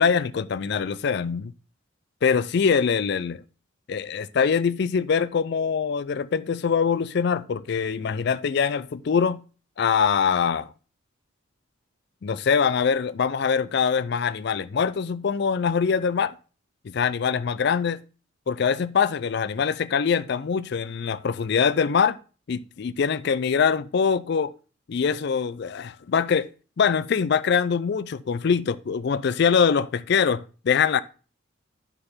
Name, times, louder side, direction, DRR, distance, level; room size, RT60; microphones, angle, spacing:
voice 1, 0.0-1.5 2.2-3.4 3.9-9.4 9.8-10.7 12.2-16.3 16.8-18.0 18.5-22.2 22.5-24.5 24.9-26.5 26.8-31.0, left 6 dB, 55° left, 0.4 m, -23 dB
9.6 x 3.8 x 5.6 m
head